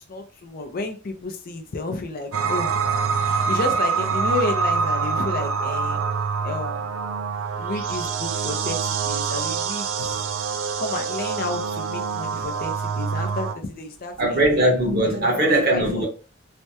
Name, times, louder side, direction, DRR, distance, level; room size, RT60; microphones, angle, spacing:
voice 1, 0.1-2.8 3.2-6.0 6.4-7.1 7.6-10.2 10.8-14.4 15.0-15.3 15.7-16.0, left 3 dB, 45° left, 0.5 m, -31 dB
sound 1, 2.3-13.5, right 5 dB, 75° right, 0.4 m, -25 dB
voice 2, 14.2-16.1, right 1 dB, 50° right, 1.3 m, -20 dB
3.2 x 2.2 x 2.7 m
head